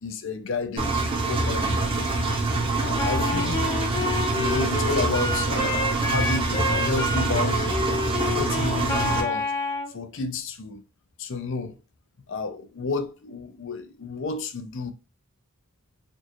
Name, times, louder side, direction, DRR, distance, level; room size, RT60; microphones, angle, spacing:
voice 1, 0.0-1.8 2.8-3.7 4.3-7.8 8.4-9.4 9.9-10.8 11.2-11.8 12.3-14.9, left 4 dB, 60° left, 0.5 m, -31 dB
Engine, 0.8-9.2, right 3 dB, 25° right, 0.6 m, -25 dB
Wind instrument woodwind instrument, 3.0-9.9, left 2 dB, 20° left, 0.8 m, -29 dB
4.4 x 2.4 x 2.9 m
head